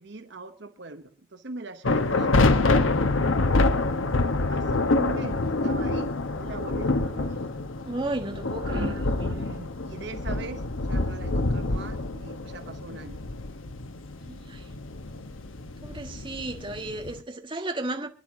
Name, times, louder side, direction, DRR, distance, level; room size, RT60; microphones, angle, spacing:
voice 1, 0.0-3.2 4.5-7.4 8.6-13.2, right 3 dB, 60° right, 1.0 m, -40 dB
sound 1, 1.8-17.2, left 2 dB, 85° left, 1.0 m, -26 dB
voice 2, 7.8-8.9 14.2-14.6 15.8-18.1, right 2 dB, 25° right, 1.4 m, -33 dB
25.5 x 10.5 x 3.7 m
head